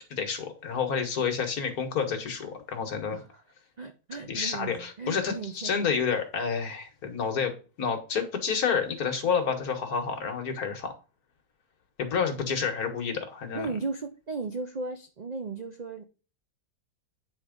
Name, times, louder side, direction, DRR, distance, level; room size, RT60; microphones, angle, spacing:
voice 1, 0.1-3.2 4.3-10.9 12.0-13.7, left 6 dB, 65° left, 5 dB, 1.9 m, -29 dB
voice 2, 3.8-5.9 13.5-16.0, right 4 dB, 90° right, 6 dB, 0.3 m, -36 dB
8.9 x 3.6 x 5.1 m, 0.34 s
omnidirectional pair, 1.7 m